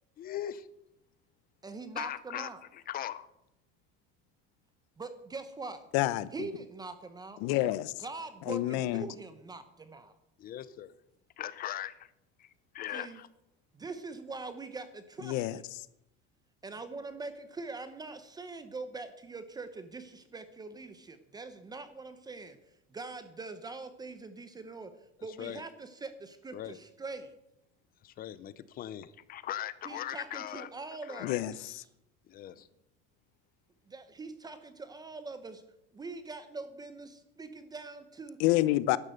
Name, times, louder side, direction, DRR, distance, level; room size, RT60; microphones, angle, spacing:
voice 1, 0.2-0.7 2.0-2.5 2.9-3.3 10.4-10.9 11.4-12.1 12.4-12.5 12.7-13.3 25.4-25.6 26.5-26.8 28.0-30.7 31.1-31.4 32.3-32.7, left 11 dB, 30° left, 0.6 m, -39 dB
voice 2, 1.6-2.6 5.0-5.8 6.3-7.4 8.0-10.1 12.9-13.2 13.7-15.6 16.6-22.6 22.9-27.3 29.8-31.8 33.9-35.6 35.9-38.4, right 3 dB, 15° right, 0.8 m, -43 dB
voice 3, 5.9-6.5 7.4-7.9 8.5-9.1 15.2-15.6 31.2-31.8 38.4-39.0, left 16 dB, 65° left, 0.9 m, -28 dB
12.0 x 11.0 x 7.7 m
cardioid pair, 170°, 29 cm